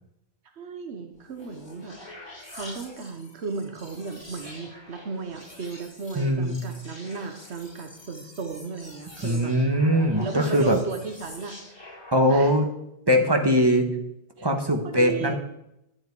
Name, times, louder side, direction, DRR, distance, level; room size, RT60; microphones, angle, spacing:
voice 1, 0.5-1.9 2.5-9.5 10.2-11.5 12.3-12.5 14.4-14.5 14.8-15.3, right 4 dB, 80° right, 5 dB, 1.3 m, -35 dB
sound 1, 1.2-12.6, left 1 dB, 25° left, 2.0 m, -46 dB
voice 2, 6.2-6.6 9.2-10.8 12.1-12.6 13.1-13.9 14.4-15.3, equal, 25° right, 5 dB, 1.3 m, -21 dB
13.0 x 7.9 x 4.7 m, 0.83 s
omnidirectional pair, 1.1 m